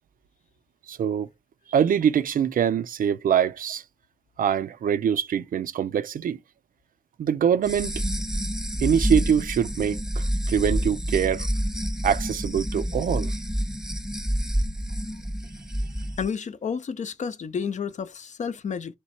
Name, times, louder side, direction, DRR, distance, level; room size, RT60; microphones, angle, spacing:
voice 1, 0.9-1.3 1.7-3.8 4.4-6.4 7.2-7.9 8.8-11.5 12.0-13.3, right 8 dB, 85° right, 0.4 m, -24 dB
sound 1, 7.6-16.3, equal, 5° right, 0.6 m, -28 dB
voice 2, 16.2-19.0, left 6 dB, 60° left, 0.5 m, -31 dB
3.2 x 3.0 x 4.2 m
wide cardioid pair, 110°, 14 cm